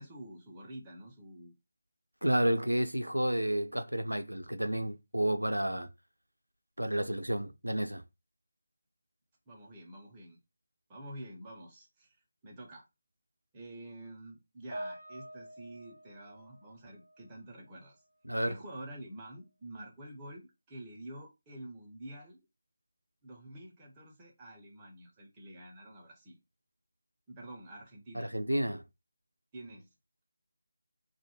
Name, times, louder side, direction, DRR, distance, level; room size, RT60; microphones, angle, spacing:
voice 1, 0.0-1.5 9.5-10.4 10.9-12.2 12.4-12.8 13.5-18.0 18.4-22.4 23.2-26.4 27.3-28.3 29.5-29.9, right 1 dB, 15° right, 0.6 m, -48 dB
voice 2, 2.2-5.9 6.8-8.0 18.2-18.5 28.1-28.8, right 1 dB, 85° right, 0.4 m, -31 dB
Piano, 14.7-17.4 17.6-18.0 18.7-18.9, right 1 dB, 90° left, 1.0 m, -46 dB
2.3 x 2.1 x 3.0 m
figure-of-eight pair, 160°, 0 cm